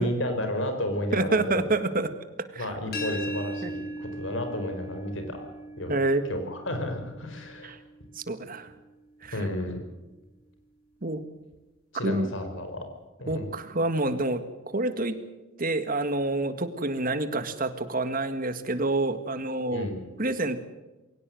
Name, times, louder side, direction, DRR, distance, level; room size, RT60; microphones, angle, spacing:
voice 1, 0.0-1.6 2.6-5.4 5.8-6.0 6.3-7.8 9.3-9.8 11.9-12.8 13.2-13.5 19.7-20.0, left 1 dB, 65° left, 6 dB, 4.8 m, -32 dB
voice 2, 1.1-2.1 2.5-2.7 3.6-3.7 5.9-6.2 7.6-7.8 8.2-8.7 9.2-9.4 11.0-11.2 12.0-12.3 13.3-15.2 15.6-19.9 20.2-20.6, right 2 dB, 45° right, 10 dB, 1.8 m, -27 dB
sound 1, 2.9-8.7, right 1 dB, 50° left, 7.0 m, -39 dB
22.5 x 17.5 x 7.8 m, 1.1 s
head